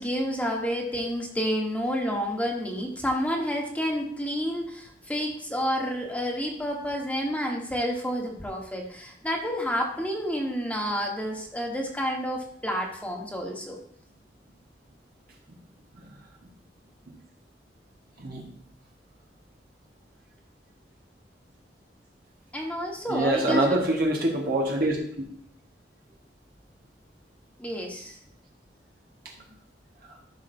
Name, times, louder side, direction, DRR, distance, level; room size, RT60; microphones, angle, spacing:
voice 1, 0.0-13.8 22.5-23.7 27.6-28.2, equal, 10° left, 0 dB, 1.4 m, -29 dB
voice 2, 23.1-25.0, right 1 dB, 55° right, -1 dB, 1.5 m, -24 dB
13.5 x 6.1 x 2.7 m, 0.65 s
head